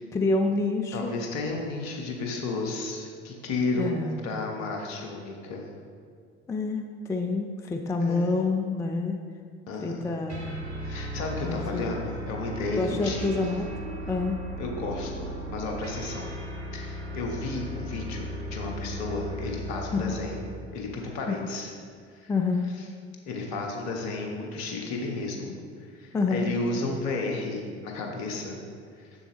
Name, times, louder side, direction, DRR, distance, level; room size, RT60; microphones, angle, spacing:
voice 1, 0.1-1.1 3.8-4.2 6.5-9.2 9.8-10.5 11.4-11.9 12.7-13.7 14.1-14.4 19.9-20.1 21.3-21.4 22.3-22.7 26.1-26.5, left 3 dB, 10° left, 4 dB, 0.4 m, -27 dB
voice 2, 0.9-5.7 8.0-8.3 9.7-10.1 10.8-13.5 14.6-16.3 16.7-21.7 22.1-22.3 23.3-25.5 25.8-28.6 29.0-29.1, left 3 dB, 55° left, 1 dB, 1.2 m, -33 dB
sound 1, 10.3-20.6, right 1 dB, 80° right, 0.8 m, -36 dB
7.0 x 6.9 x 3.0 m, 2.2 s
figure-of-eight pair, 60°, 33 cm